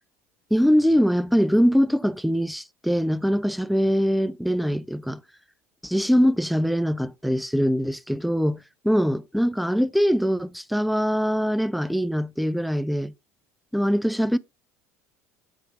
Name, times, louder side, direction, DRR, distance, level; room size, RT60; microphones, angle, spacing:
voice 1, 0.5-5.2 5.8-8.6 8.8-13.1 13.7-14.4, equal, ahead, 0.4 m, -22 dB
8.3 x 4.0 x 3.6 m
supercardioid pair, 90°, 8 cm